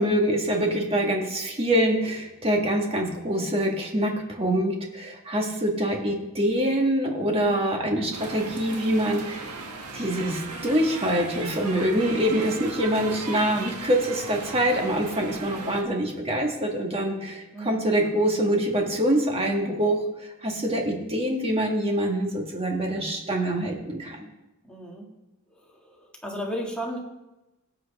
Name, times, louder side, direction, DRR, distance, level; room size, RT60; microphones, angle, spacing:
voice 1, 0.0-9.5 9.9-24.3, right 1 dB, 25° right, 1 dB, 1.8 m, -25 dB
sound 1, 8.1-15.8, right 4 dB, 90° right, 1.5 m, -37 dB
voice 2, 24.6-25.1 25.5-27.0, equal, 5° left, -2 dB, 2.1 m, -34 dB
18.0 x 7.7 x 3.6 m, 0.98 s
head